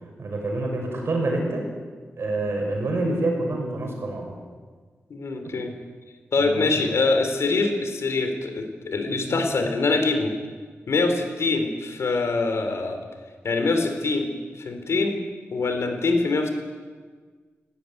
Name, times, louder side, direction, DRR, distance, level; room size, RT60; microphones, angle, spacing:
voice 1, 0.2-1.7 2.2-4.3 6.4-6.7 9.1-9.5, right 2 dB, 60° right, 1 dB, 6.1 m, -27 dB
voice 2, 5.1-5.7 6.3-10.3 10.9-13.0 13.4-14.3 14.6-15.2 15.5-16.5, left 3 dB, 70° left, 6 dB, 3.3 m, -24 dB
18.5 x 16.0 x 9.8 m, 1.5 s
wide cardioid pair, 145°, 5 cm